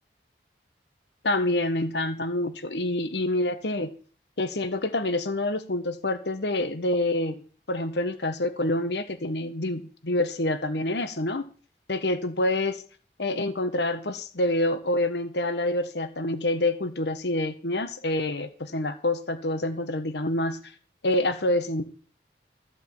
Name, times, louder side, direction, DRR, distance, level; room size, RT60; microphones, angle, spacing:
voice 1, 1.2-3.9 4.4-11.4 11.9-12.8 13.2-20.6 21.0-21.8, left 1 dB, 80° left, 10 dB, 1.3 m, -27 dB
14.5 x 5.2 x 8.9 m, 0.40 s
head